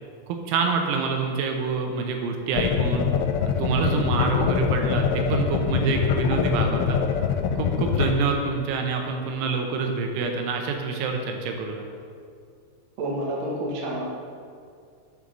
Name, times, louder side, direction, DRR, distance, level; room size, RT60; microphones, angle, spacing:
voice 1, 0.3-3.1 3.5-7.0 7.6-11.8, right 5 dB, 85° right, 3 dB, 3.2 m, -26 dB
sound 1, 2.6-8.1, left 7 dB, 80° left, 2.6 m, -24 dB
voice 2, 13.0-14.0, right 1 dB, 60° right, -3 dB, 1.8 m, -29 dB
8.7 x 5.4 x 6.2 m, 2.2 s
omnidirectional pair, 5.4 m